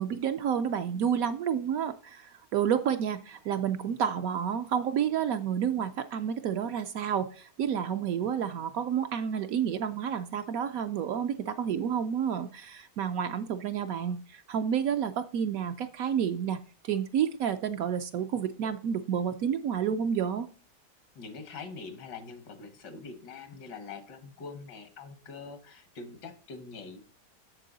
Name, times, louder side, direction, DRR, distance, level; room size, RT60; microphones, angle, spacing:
voice 1, 0.0-20.5, right 8 dB, 70° right, 9 dB, 0.9 m, -30 dB
voice 2, 21.2-27.0, left 4 dB, 85° left, 9 dB, 1.9 m, -44 dB
7.4 x 6.8 x 3.9 m, 0.38 s
omnidirectional pair, 1.8 m